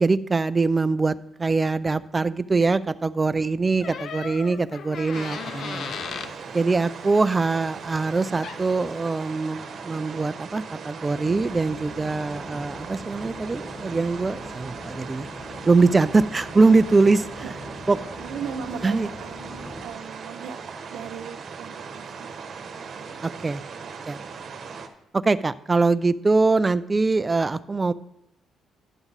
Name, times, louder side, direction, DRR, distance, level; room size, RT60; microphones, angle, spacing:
voice 1, 0.0-6.0 6.5-15.3 15.7-17.2 17.9-18.0 18.8-19.1 23.2-23.6 24.1-24.2 25.1-27.9, right 3 dB, 25° right, 15 dB, 0.4 m, -22 dB
Door, 3.8-6.4 8.1-8.2 8.4-8.8, left 7 dB, 65° left, 0.6 m, -35 dB
sound 1, 5.1-24.9, right 5 dB, 55° right, 1.1 m, -39 dB
sound 2, 11.1-19.9, left 2 dB, 45° left, 1.9 m, -41 dB
voice 2, 17.4-17.8 18.2-20.6 20.9-22.3 23.0-23.4, right 7 dB, 80° right, 9 dB, 0.8 m, -38 dB
11.0 x 7.1 x 4.1 m, 0.85 s
cardioid pair, 90°, 0 cm